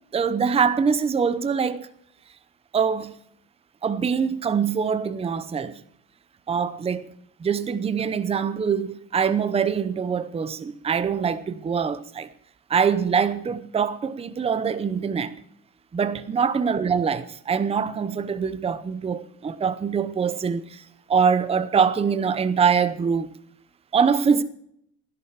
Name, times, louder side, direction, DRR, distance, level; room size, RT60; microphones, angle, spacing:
voice 1, 0.1-1.9 2.7-3.1 3.8-5.8 6.5-7.1 7.4-12.3 12.7-15.3 15.9-20.8 21.1-23.3 23.9-24.4, right 6 dB, 15° right, 0.7 m, -24 dB
16.0 x 11.0 x 5.8 m
cardioid pair, 135°, 36 cm